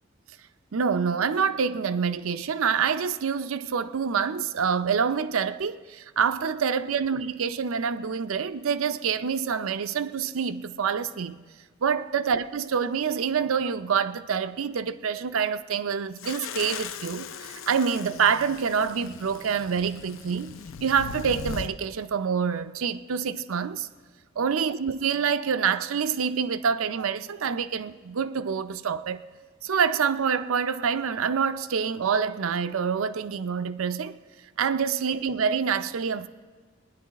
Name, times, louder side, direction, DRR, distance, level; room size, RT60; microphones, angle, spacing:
voice 1, 0.7-11.4 11.8-23.9 24.4-29.2 29.6-34.2 34.6-36.3, right 6 dB, 85° right, 0.5 m, -26 dB
sound 1, 16.2-21.7, left 6 dB, 75° left, 0.5 m, -39 dB
20.0 x 10.0 x 4.1 m
head